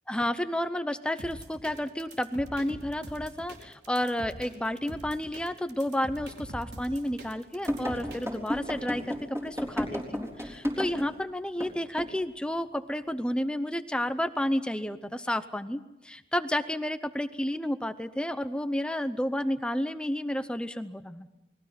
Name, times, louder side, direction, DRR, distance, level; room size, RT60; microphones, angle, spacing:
voice 1, 0.1-21.3, left 1 dB, 5° left, 10 dB, 0.7 m, -31 dB
sound 1, 1.2-8.5, right 1 dB, 70° right, 4.3 m, -44 dB
sound 2, 7.7-11.1 11.6-11.7 12.0-12.2, equal, 15° right, 4.0 m, -32 dB
29.0 x 21.5 x 5.8 m, 0.96 s
head